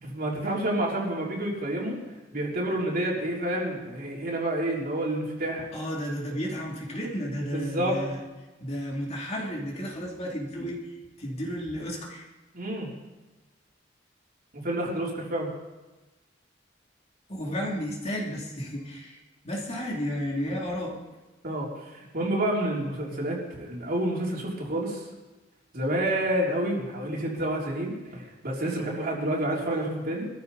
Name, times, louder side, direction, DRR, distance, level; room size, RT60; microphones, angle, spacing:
voice 1, 0.0-2.0 2.3-5.7 7.5-8.0 12.5-13.0 14.5-15.5 21.4-25.0 25.7-30.3, right 1 dB, 50° right, -3 dB, 3.6 m, -29 dB
voice 2, 5.7-8.2 8.6-10.9 11.2-12.2 17.3-19.2 19.4-21.0, equal, 35° left, -2 dB, 3.1 m, -32 dB
21.0 x 14.0 x 4.2 m, 1.1 s
head